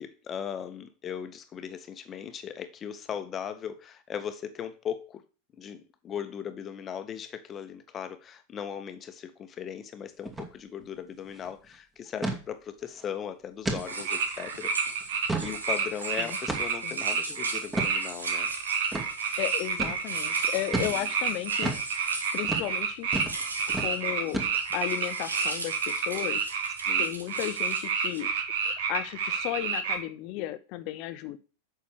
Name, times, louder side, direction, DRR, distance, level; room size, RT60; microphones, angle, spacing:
voice 1, 0.0-5.2 5.6-14.7 15.0-18.5 20.9-21.0 26.8-27.1, left 8 dB, 25° left, 1.5 m, -38 dB
sound 1, 10.3-10.5 10.8-10.9 11.2-11.5 12.2-12.4 12.9-13.0 13.6-13.9 14.4-14.5 15.0-15.6 16.5-16.8 17.7-17.9 18.9-19.1 19.8-20.0 20.7-21.0 21.6-21.9 22.4-22.7 23.1-23.4 23.7-23.9 24.3-24.8, right 2 dB, 10° right, 2.5 m, -31 dB
sound 2, 13.8-22.8 23.1-28.2, right 2 dB, 80° right, 2.2 m, -40 dB
sound 3, 13.9-30.0, right 6 dB, 55° right, 2.4 m, -29 dB
voice 2, 19.4-21.7 22.3-23.1 23.7-24.4 24.7-26.5 27.0-28.3 28.7-31.4, left 15 dB, 45° left, 1.0 m, -34 dB
8.4 x 6.4 x 6.8 m
figure-of-eight pair, 90°, 0 cm